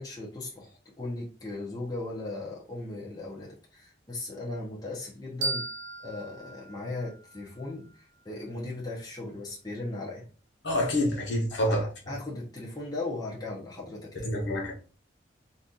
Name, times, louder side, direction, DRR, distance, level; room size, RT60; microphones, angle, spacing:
voice 1, 0.0-5.7 6.0-7.9 8.2-10.3 11.7-14.3, left 2 dB, 20° left, 0.7 m, -37 dB
sound 1, 5.4-8.2, right 3 dB, 70° right, 0.6 m, -37 dB
voice 2, 10.6-11.9 14.2-14.7, left 1 dB, 70° left, 1.1 m, -27 dB
2.7 x 2.5 x 3.6 m
head